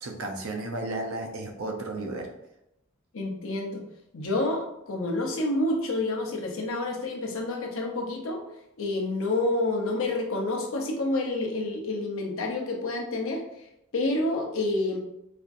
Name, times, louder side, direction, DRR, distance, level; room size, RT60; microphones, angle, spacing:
voice 1, 0.0-2.3, right 2 dB, 70° right, 3 dB, 0.6 m, -33 dB
voice 2, 3.1-3.8 4.1-8.4 8.8-13.4 13.9-15.0, left 2 dB, 65° left, 0 dB, 0.7 m, -28 dB
4.2 x 2.5 x 2.5 m, 0.83 s
head